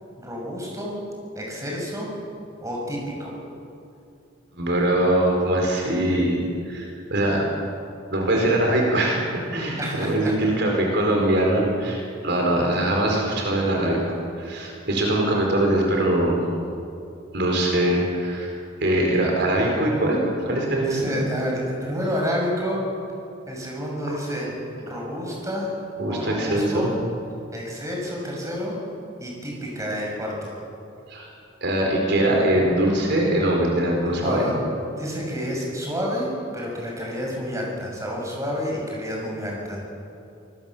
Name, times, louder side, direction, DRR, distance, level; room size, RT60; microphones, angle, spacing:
voice 1, 0.2-1.0 1.3-2.1 2.6-3.4 9.8-10.3 20.8-22.9 23.5-24.5 24.8-25.7 26.1-26.9 27.5-28.8 29.2-30.5 34.1-34.6 35.0-39.8, equal, 15° right, -2 dB, 6.5 m, -29 dB
voice 2, 4.6-6.4 6.7-7.4 8.1-14.0 14.4-16.4 17.3-18.5 18.8-21.3 26.0-26.9 31.1-31.3 31.6-34.5, right 1 dB, 60° right, 0 dB, 4.6 m, -22 dB
25.5 x 20.5 x 7.4 m, 2.6 s
head